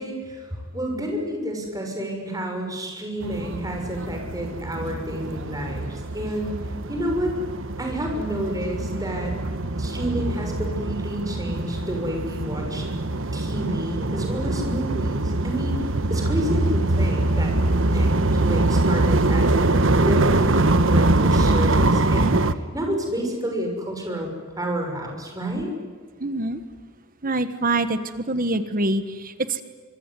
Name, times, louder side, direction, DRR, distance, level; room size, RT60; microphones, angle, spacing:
voice 1, 0.0-6.6 6.9-7.3 7.8-9.3 9.8-12.8 13.3-15.8 16.1-18.1 18.4-22.3 22.7-24.3 24.6-25.7, equal, 15° right, 2 dB, 6.4 m, -30 dB
sound 1, 3.2-22.5, right 2 dB, 60° right, 1.3 m, -23 dB
voice 2, 26.2-26.6 27.2-29.6, right 2 dB, 40° right, 11 dB, 1.4 m, -25 dB
25.5 x 23.0 x 9.9 m, 1.5 s
head